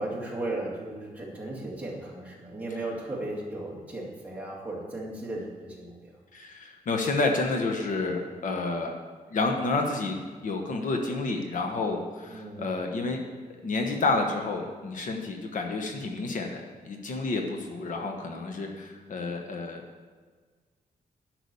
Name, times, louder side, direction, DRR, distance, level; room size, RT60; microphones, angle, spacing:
voice 1, 0.0-6.0 12.3-12.7, right 2 dB, 10° right, -4 dB, 2.2 m, -36 dB
voice 2, 6.3-8.9 9.3-10.2 10.4-13.2 13.6-19.8, left 3 dB, 60° left, 3 dB, 1.1 m, -30 dB
10.5 x 6.1 x 6.9 m, 1.5 s
wide cardioid pair, 165°, 15 cm